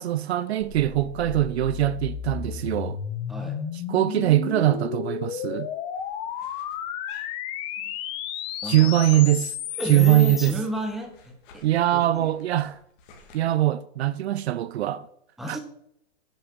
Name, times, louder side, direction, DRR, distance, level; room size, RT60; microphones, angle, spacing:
voice 1, 0.0-3.0 3.9-5.7 8.6-9.6 9.8-10.5 11.6-12.8 13.3-15.1 15.5-15.6, right 14 dB, 60° right, 0.6 m, -22 dB
sound 1, 0.6-10.5, left 10 dB, 15° left, 0.4 m, -33 dB
sound 2, 5.9-8.0 8.3-10.1 10.4-13.4, left 5 dB, 45° left, 2.7 m, -54 dB
voice 2, 8.6-8.9 9.8-11.6 11.9-12.3 15.4-15.6, right 1 dB, ahead, 1.4 m, -32 dB
9.9 x 6.3 x 6.2 m
hypercardioid pair, 150°, 36 cm